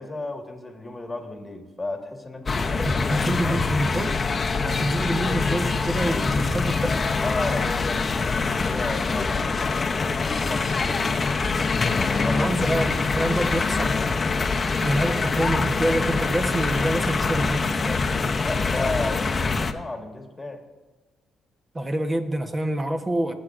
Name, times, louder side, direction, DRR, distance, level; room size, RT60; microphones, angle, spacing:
voice 1, 0.0-3.6 7.2-11.3 12.0-12.5 18.4-20.6, left 2 dB, 20° left, 3 dB, 1.6 m, -34 dB
sound 1, 2.5-19.7, left 4 dB, 35° left, 0.7 m, -24 dB
voice 2, 2.8-4.2 4.6-6.9 12.3-14.2 14.8-18.0 21.7-23.3, right 1 dB, 25° right, 6 dB, 1.0 m, -27 dB
20.5 x 7.9 x 2.5 m, 1.2 s
cardioid pair, 90°, 0 cm